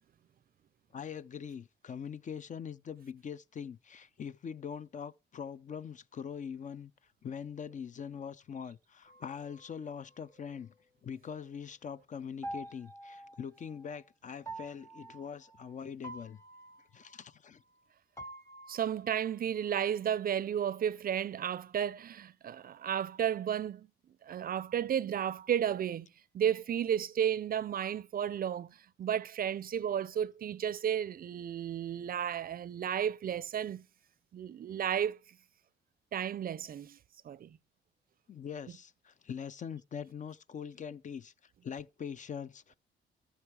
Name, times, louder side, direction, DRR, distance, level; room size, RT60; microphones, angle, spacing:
voice 1, 0.9-6.9 7.2-10.7 11.0-16.4 16.9-17.6 38.3-42.7, left 7 dB, 40° left, 0.5 m, -43 dB
sound 1, 9.0-10.8 12.4-14.0 14.4-17.9 18.2-20.3, right 2 dB, 15° left, 1.2 m, -49 dB
voice 2, 18.7-23.9 24.2-26.1 26.3-28.7 29.0-33.8 34.3-35.2 36.1-37.0 37.2-37.6, right 9 dB, 45° right, 0.5 m, -33 dB
13.5 x 5.8 x 4.7 m
cardioid pair, 90°, 20 cm